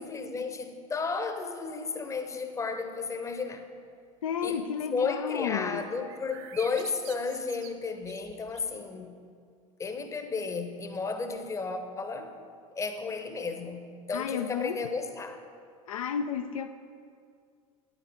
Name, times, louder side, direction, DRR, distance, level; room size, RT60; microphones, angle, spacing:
voice 1, 0.0-3.7 4.4-4.6 4.9-9.2 9.8-12.3 12.8-15.4, left 4 dB, 15° left, 0.8 m, -33 dB
voice 2, 4.2-5.8 14.1-14.8 15.9-16.7, left 8 dB, 65° left, 0.4 m, -32 dB
sound 1, 6.1-8.8, right 9 dB, 50° right, 0.7 m, -48 dB
9.8 x 8.2 x 5.0 m
figure-of-eight pair, 75°, 19 cm